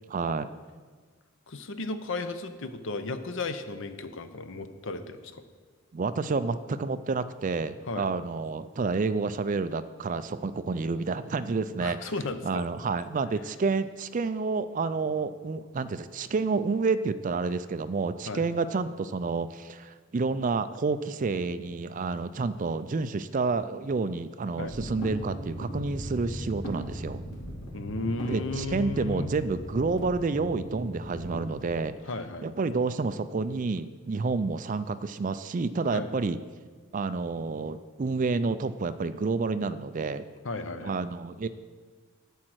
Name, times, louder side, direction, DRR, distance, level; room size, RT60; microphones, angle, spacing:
voice 1, 0.1-0.5 5.9-12.1 12.4-27.2 28.3-31.9 32.4-36.4 36.9-40.2 40.8-41.5, right 4 dB, 35° right, 13 dB, 0.4 m, -29 dB
voice 2, 1.5-5.4 7.9-8.1 11.8-12.6 18.3-18.4 24.6-24.7 27.7-29.3 32.1-32.5 35.9-36.1 40.4-41.0, left 3 dB, 60° left, 10 dB, 0.7 m, -34 dB
sound 1, 24.6-31.4, right 1 dB, 85° left, 2.8 m, -38 dB
11.5 x 7.6 x 4.7 m, 1.5 s
head